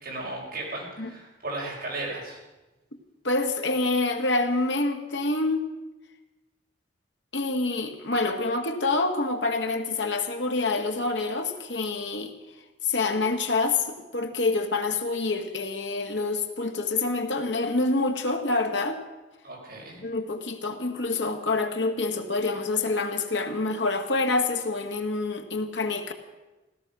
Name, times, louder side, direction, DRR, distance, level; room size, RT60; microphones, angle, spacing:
voice 1, 0.0-2.4 19.4-20.0, right 2 dB, 55° right, -3 dB, 5.5 m, -35 dB
voice 2, 3.2-5.6 7.3-12.3 12.8-19.0 20.0-26.1, left 3 dB, 75° left, 5 dB, 1.7 m, -27 dB
16.5 x 13.5 x 6.1 m, 1.1 s
head